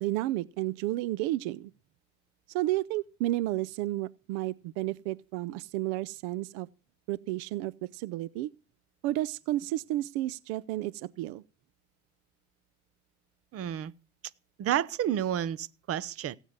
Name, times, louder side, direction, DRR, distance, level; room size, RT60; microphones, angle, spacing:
voice 1, 0.0-1.7 2.5-6.7 7.1-8.5 9.0-11.4, right 16 dB, 75° right, 0.6 m, -32 dB
voice 2, 13.5-13.9 14.6-16.4, right 10 dB, 40° right, 0.9 m, -30 dB
16.5 x 9.1 x 6.5 m
supercardioid pair, 115°, 35 cm